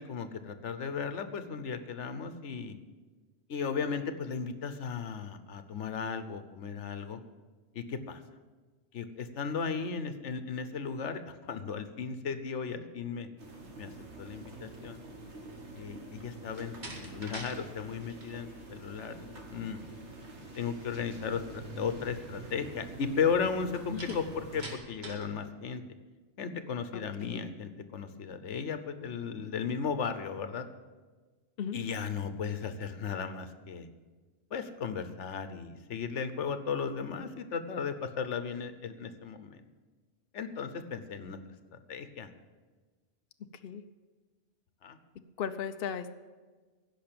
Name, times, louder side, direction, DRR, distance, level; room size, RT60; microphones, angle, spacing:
voice 1, 0.0-2.8 3.5-7.2 7.7-8.2 8.9-13.3 13.8-13.9 14.2-15.0 15.7-16.7 17.0-19.2 19.5-19.8 20.6-25.8 26.4-30.7 31.7-33.9 34.5-39.6 40.3-41.4 41.9-42.3 44.8-45.0, left 6 dB, 80° left, 10 dB, 1.2 m, -35 dB
sound 1, 13.4-24.8, right 2 dB, 75° right, 2.1 m, -46 dB
Slam, 16.5-17.6 17.9-18.4 24.0-25.3, right 1 dB, 40° right, 2.2 m, -44 dB
voice 2, 45.4-46.1, left 7 dB, 60° left, 8 dB, 0.8 m, -36 dB
16.0 x 5.9 x 8.7 m, 1.3 s
omnidirectional pair, 1.2 m